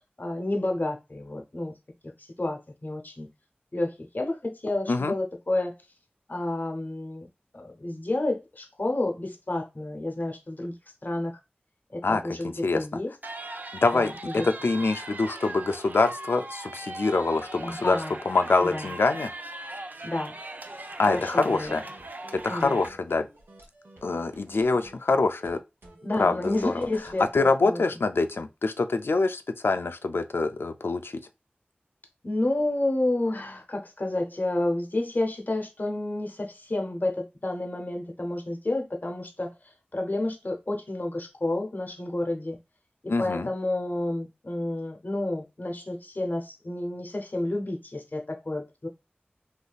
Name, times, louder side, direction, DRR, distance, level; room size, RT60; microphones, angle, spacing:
voice 1, 0.2-1.7 2.2-3.3 3.7-5.7 6.3-7.3 7.5-10.7 11.0-11.4 11.9-13.1 13.9-14.5 17.6-18.2 18.6-18.9 20.0-20.4 21.1-21.8 22.5-22.8 26.0-27.8 32.2-42.6 43.0-48.9, left 2 dB, 50° left, 0.8 m, -30 dB
voice 2, 12.0-12.8 13.7-18.0 18.3-19.3 21.0-21.8 22.3-23.3 24.0-25.6 26.2-26.7 27.3-31.2 43.1-43.5, left 3 dB, 80° left, 0.3 m, -25 dB
sound 1, 13.2-22.9, right 2 dB, 50° right, 0.4 m, -39 dB
sound 2, 21.4-27.3, right 1 dB, 85° right, 0.9 m, -51 dB
3.3 x 2.7 x 2.3 m
wide cardioid pair, 40°, 4 cm